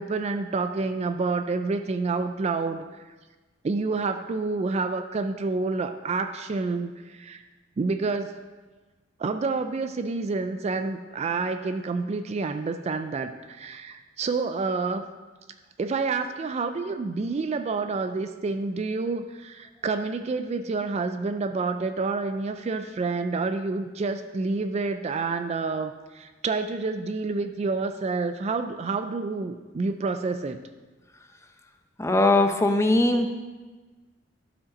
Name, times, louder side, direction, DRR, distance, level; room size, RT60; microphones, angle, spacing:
voice 1, 0.0-2.8 3.6-7.4 7.8-8.4 9.2-15.1 15.8-30.6, right 4 dB, 35° right, 9 dB, 0.3 m, -28 dB
voice 2, 32.0-33.3, left 2 dB, 15° left, 6 dB, 0.6 m, -20 dB
12.0 x 5.1 x 4.1 m, 1.3 s
head